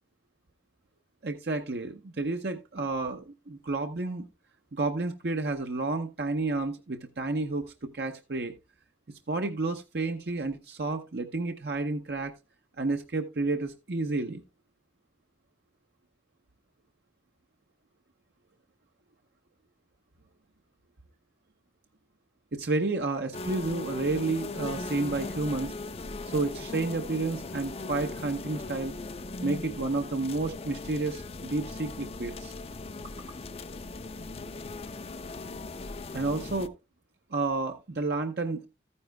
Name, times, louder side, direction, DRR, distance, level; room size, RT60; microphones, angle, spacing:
voice 1, 1.2-4.3 4.7-8.5 9.3-12.3 12.8-14.4 22.5-25.7 26.3-29.0 29.4-32.5 36.1-36.7 37.3-38.7, right 3 dB, 60° right, 5 dB, 0.7 m, -31 dB
sound 1, 23.3-36.7, left 2 dB, 30° left, 0.4 m, -39 dB
14.0 x 9.7 x 2.2 m, 0.25 s
head